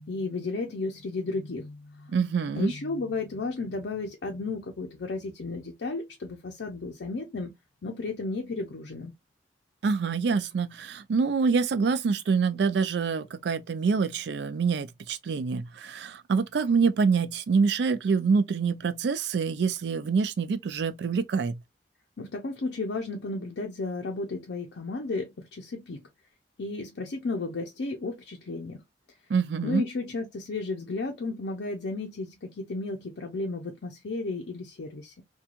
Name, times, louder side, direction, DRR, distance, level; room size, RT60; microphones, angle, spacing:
voice 1, 0.0-2.1 2.6-7.5 7.8-9.1 22.2-26.0 26.6-28.8 29.6-35.2, left 3 dB, 75° left, 0.5 m, -33 dB
voice 2, 2.1-2.7 9.8-21.6 29.3-29.9, right 5 dB, 65° right, 0.4 m, -26 dB
2.9 x 2.2 x 2.3 m
head